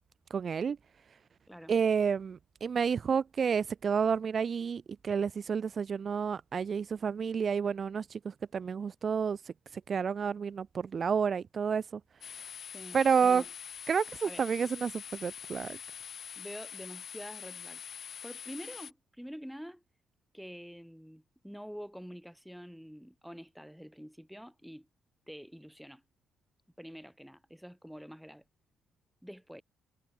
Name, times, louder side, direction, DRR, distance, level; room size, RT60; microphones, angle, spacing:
voice 1, 0.3-0.8 1.7-11.8 12.9-13.4 13.9-15.8, right 6 dB, 45° right, 0.3 m, -30 dB
sound 1, 12.2-18.9, left 8 dB, 55° left, 2.4 m, -45 dB
voice 2, 12.7-13.5 14.2-14.4 16.4-17.8 18.2-19.8 20.3-24.9 25.3-26.0 26.8-28.4 29.2-29.6, equal, ahead, 6.6 m, -47 dB
cardioid pair, 90°, 0 cm